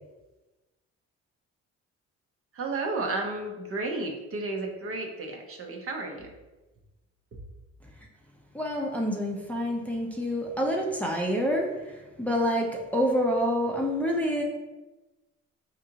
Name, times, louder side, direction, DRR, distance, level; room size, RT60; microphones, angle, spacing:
voice 1, 2.5-6.3 7.3-7.4, right 3 dB, 50° right, 2 dB, 0.7 m, -32 dB
voice 2, 8.5-14.4, equal, 5° left, -1 dB, 0.6 m, -27 dB
4.9 x 2.6 x 2.8 m, 1.1 s
cardioid pair, 90°, 30 cm